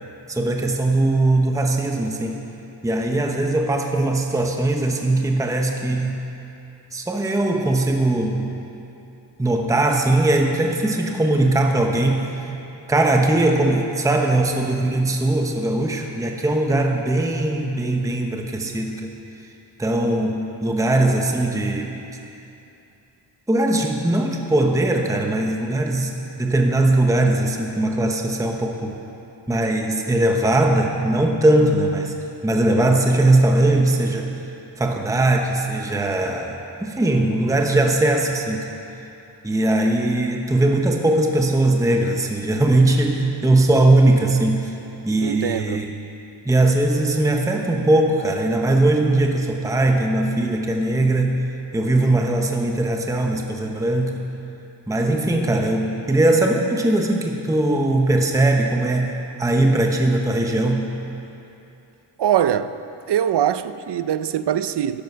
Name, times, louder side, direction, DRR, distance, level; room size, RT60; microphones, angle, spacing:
voice 1, 0.3-2.4 2.8-6.2 6.9-8.5 9.4-12.3 12.9-19.1 19.8-21.9 23.5-29.0 29.5-32.1 32.4-34.3 34.8-38.7 39.4-44.7 45.0-45.9 46.5-51.4 51.7-54.2 54.9-60.9, right 2 dB, 5° right, 0.8 m, -20 dB
voice 2, 45.2-45.9 62.2-62.8 63.1-65.0, right 10 dB, 65° right, 0.5 m, -22 dB
14.0 x 12.0 x 5.6 m
wide cardioid pair, 170°, 44 cm